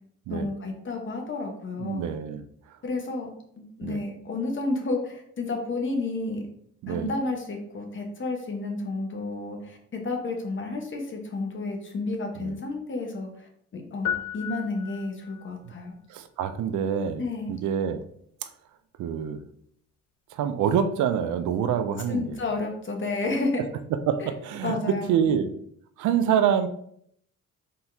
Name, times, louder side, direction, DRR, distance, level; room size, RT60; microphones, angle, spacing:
voice 1, 0.3-2.1 2.8-3.3 3.6-6.5 6.9-15.9 17.2-17.5 22.1-23.7 24.2-24.3 24.6-25.3, left 3 dB, 40° left, 3 dB, 1.1 m, -31 dB
voice 2, 1.8-2.5 3.8-4.0 6.8-7.1 12.4-12.6 15.6-15.7 16.1-17.2 17.5-18.0 18.4-18.5 19.0-19.4 20.3-22.4 24.1-24.8 25.1-25.5 26.0-26.7, right 8 dB, 75° right, 9 dB, 0.5 m, -26 dB
sound 1, 14.0-15.5, left 10 dB, 65° left, 0.6 m, -33 dB
4.3 x 3.8 x 2.7 m, 0.68 s
cardioid pair, 90°, 30 cm